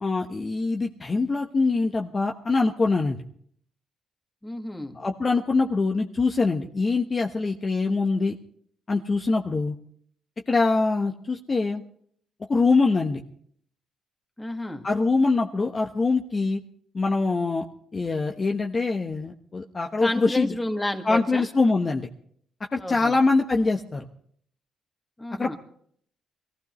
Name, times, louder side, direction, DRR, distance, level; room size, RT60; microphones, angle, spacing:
voice 1, 0.0-3.2 4.9-8.3 8.9-9.7 10.5-11.8 12.5-13.2 14.8-16.6 16.9-17.6 17.9-20.5 21.0-22.1 22.7-24.0 25.4-25.5, left 3 dB, 30° left, 2 dB, 1.1 m, -23 dB
voice 2, 4.4-5.0 14.4-14.9 20.0-21.4 22.8-23.2 25.2-25.6, left 1 dB, 10° left, 4 dB, 2.0 m, -31 dB
23.0 x 15.5 x 3.2 m, 0.63 s
cardioid pair, 90°, 0 cm